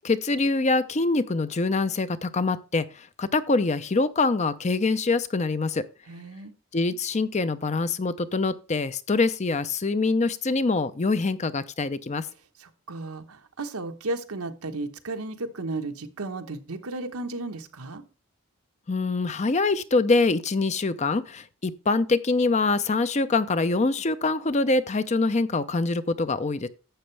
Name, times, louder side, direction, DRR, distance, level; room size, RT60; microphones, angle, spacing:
voice 1, 0.0-5.9 6.7-12.3 18.9-26.7, left 3 dB, 30° left, 0.5 m, -24 dB
voice 2, 6.1-6.5 12.6-18.0, right 2 dB, 90° right, 1.2 m, -34 dB
11.5 x 7.8 x 3.3 m
head